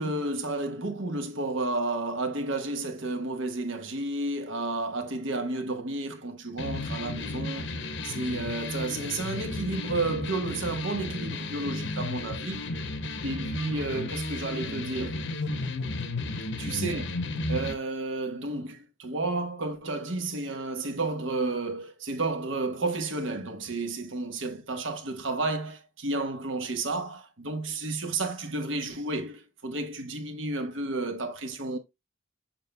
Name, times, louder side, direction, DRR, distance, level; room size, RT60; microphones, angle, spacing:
voice 1, 0.0-7.7 8.0-12.9 13.2-15.2 16.6-17.0 17.5-31.8, right 2 dB, 70° right, 1.2 m, -31 dB
sound 1, 6.6-17.7, left 2 dB, 65° left, 1.0 m, -33 dB
7.3 x 5.7 x 2.2 m
head